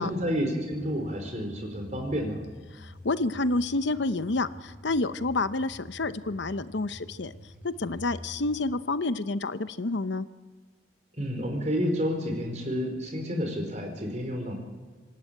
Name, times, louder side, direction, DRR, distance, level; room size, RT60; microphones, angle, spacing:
voice 1, 0.0-2.4 11.2-14.5, equal, 40° right, 3 dB, 4.5 m, -30 dB
sound 1, 0.7-8.7, equal, 10° right, 7.5 m, -47 dB
voice 2, 2.7-7.3 7.6-10.3, left 2 dB, 70° left, 13 dB, 0.8 m, -29 dB
26.0 x 13.0 x 9.0 m, 1.5 s
head